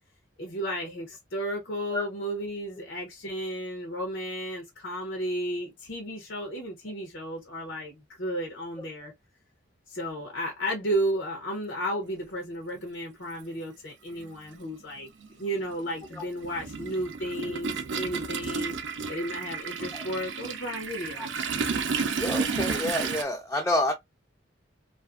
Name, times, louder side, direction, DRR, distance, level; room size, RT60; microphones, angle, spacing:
voice 1, 0.4-9.1 9.9-15.1 15.4-18.7 19.1-21.3, equal, 90° left, 0.7 m, -33 dB
Toilet flush, 12.7-12.8 14.1-14.3 14.6-23.2, right 5 dB, 80° right, 0.5 m, -32 dB
voice 2, 22.2-23.9, left 1 dB, 15° left, 0.3 m, -28 dB
2.5 x 2.4 x 2.3 m
head